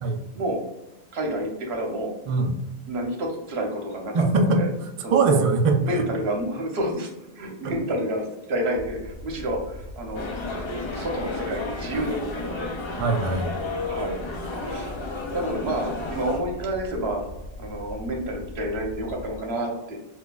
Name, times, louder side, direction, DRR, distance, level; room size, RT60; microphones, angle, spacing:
voice 1, 1.1-2.2 2.9-4.7 5.0-5.4 5.8-7.1 7.4-10.3 10.9-12.7 13.9-14.2 14.6-15.0 15.3-17.2 17.6-19.9, right 1 dB, 80° right, 2 dB, 1.0 m, -29 dB
voice 2, 4.1-6.0 7.6-7.7 13.0-13.5, right 3 dB, 60° right, 5 dB, 0.3 m, -22 dB
Aircraft, 8.7-19.4, left 1 dB, 65° left, 0.7 m, -40 dB
sound 1, 10.1-16.4, left 3 dB, 45° left, 0.4 m, -32 dB
4.4 x 2.4 x 2.3 m, 0.99 s
omnidirectional pair, 1.1 m